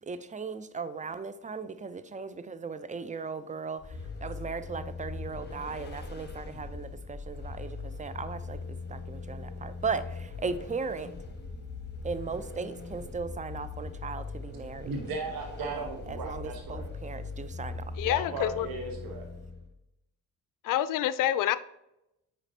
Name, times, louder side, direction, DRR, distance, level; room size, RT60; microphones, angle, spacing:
voice 1, 0.0-8.6 8.9-11.1 12.0-14.9 15.6-18.0, right 4 dB, 15° right, 0.5 m, -37 dB
voice 2, 1.8-2.2 3.4-3.7 5.5-5.7 6.5-6.6 7.1-7.3 14.8-16.9 18.0-19.3, right 3 dB, 50° right, 1.3 m, -38 dB
Vehicle, 3.8-19.7, left 3 dB, 20° left, 1.4 m, -40 dB
voice 3, 18.0-18.7 20.6-21.6, left 13 dB, 45° left, 0.5 m, -27 dB
8.8 x 5.3 x 2.8 m
figure-of-eight pair, 40°, 45 cm